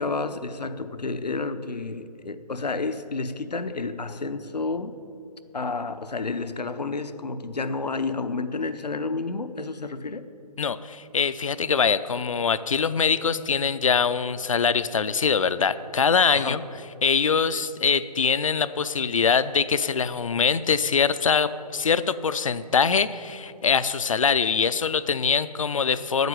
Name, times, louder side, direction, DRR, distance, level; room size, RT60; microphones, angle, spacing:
voice 1, 0.0-5.0 5.5-10.3 16.4-16.6, left 3 dB, 85° left, 11 dB, 0.8 m, -30 dB
voice 2, 10.6-16.6 17.0-26.3, left 6 dB, 55° left, 15 dB, 0.5 m, -23 dB
9.2 x 8.1 x 9.1 m, 2.7 s
figure-of-eight pair, 155°, 21 cm